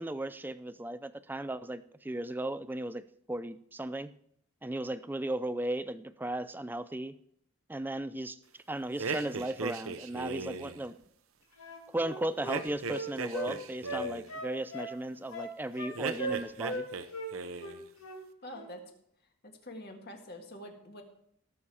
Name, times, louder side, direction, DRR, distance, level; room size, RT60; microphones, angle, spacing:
voice 1, 0.0-4.1 4.6-7.2 7.7-8.4 8.7-11.0 11.9-16.9, right 1 dB, 10° right, 14 dB, 0.3 m, -36 dB
sound 1, 9.0-10.8 12.5-14.3 15.9-17.1 17.3-17.8, right 4 dB, 75° right, 0.8 m, -38 dB
Wind instrument woodwind instrument, 11.6-13.5 13.8-14.9 15.3-15.9 16.2-16.8 17.1-17.3 17.6-18.2 18.5-18.7, right 1 dB, 80° left, 2.3 m, -38 dB
voice 2, 18.4-18.8 19.4-21.0, left 1 dB, 45° left, 3 dB, 1.9 m, -46 dB
17.5 x 7.0 x 4.8 m, 0.71 s
head